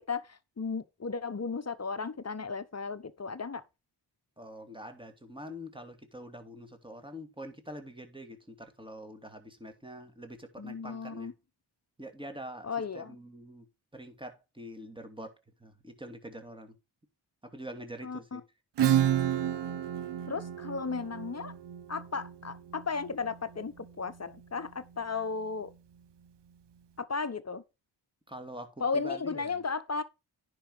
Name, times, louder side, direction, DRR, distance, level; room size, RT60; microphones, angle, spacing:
voice 1, 0.0-3.6 10.6-11.3 12.6-13.2 18.0-18.4 20.3-21.5 21.9-25.7 27.0-27.6 28.8-30.0, left 4 dB, 30° left, 1.2 m, -35 dB
voice 2, 4.4-11.3 12.0-12.7 12.9-13.7 13.9-16.8 17.4-18.4 28.3-29.6, equal, 10° right, 2.8 m, -45 dB
Acoustic guitar / Strum, 18.8-24.1, right 10 dB, 60° right, 0.9 m, -31 dB
10.0 x 5.7 x 4.9 m
supercardioid pair, 40°, 49 cm